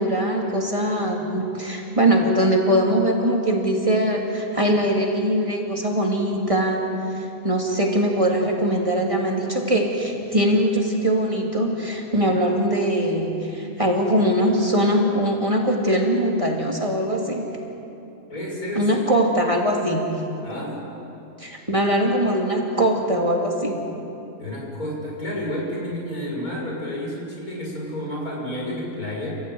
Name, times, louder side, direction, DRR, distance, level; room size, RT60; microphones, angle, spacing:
voice 1, 0.0-6.8 7.1-17.5 18.8-20.0 21.4-23.8, right 1 dB, 20° right, -1 dB, 2.9 m, -21 dB
voice 2, 18.3-19.0 20.4-20.8 24.4-29.4, left 1 dB, 80° left, -3 dB, 7.4 m, -30 dB
29.5 x 16.0 x 9.4 m, 2.8 s
omnidirectional pair, 1.5 m